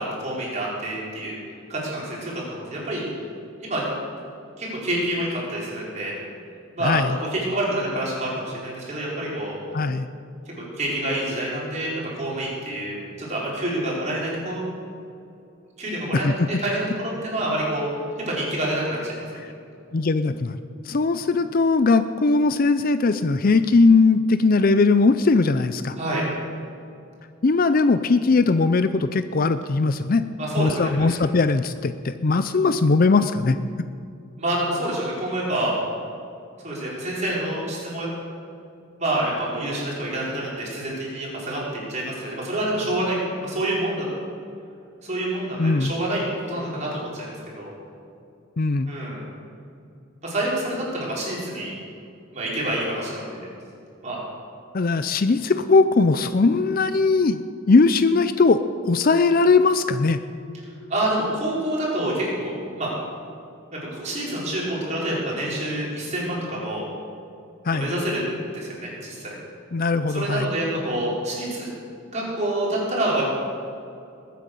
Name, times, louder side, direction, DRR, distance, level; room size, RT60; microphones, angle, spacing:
voice 1, 0.0-1.4 1.7-3.1 3.6-3.8 4.6-6.1 6.7-7.0 7.3-9.6 10.8-14.6 15.8-16.3 16.6-17.9 18.3-19.2 26.0-26.3 30.4-31.1 34.4-35.7 36.6-38.1 39.0-44.1 45.0-47.7 48.9-49.2 50.2-51.7 52.3-53.4 54.0-54.2 60.9-62.9 63.7-66.9 67.7-68.2 68.5-69.4 70.1-71.7 72.1-73.2, right 1 dB, 35° right, -5 dB, 5.1 m, -27 dB
voice 2, 9.7-10.1 16.1-16.5 19.9-20.6 20.9-26.0 27.4-30.2 30.6-33.6 45.6-45.9 48.6-48.9 54.7-60.2 67.7-67.9 69.7-70.5, left 3 dB, 45° left, 11 dB, 0.5 m, -19 dB
21.0 x 9.3 x 6.9 m, 2.6 s
head